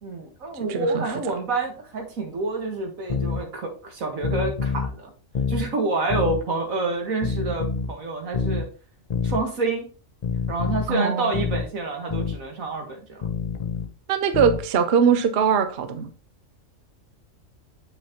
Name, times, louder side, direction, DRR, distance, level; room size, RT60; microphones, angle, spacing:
voice 1, 0.0-5.1 5.5-8.7 9.2-9.9 10.5-13.2, right 3 dB, 90° right, 1.9 m, -28 dB
voice 2, 0.7-1.0 10.9-11.3 14.1-16.1, right 7 dB, 55° right, 0.8 m, -21 dB
sound 1, 3.1-3.4 4.2-4.9 5.3-5.7 6.1-6.4 7.2-7.9 8.3-8.7 9.1-9.4 10.2-10.9 11.3-11.7 12.1-12.4 13.2-13.9 14.3-14.7, left 5 dB, 45° left, 0.5 m, -27 dB
7.3 x 5.7 x 2.9 m
omnidirectional pair, 1.4 m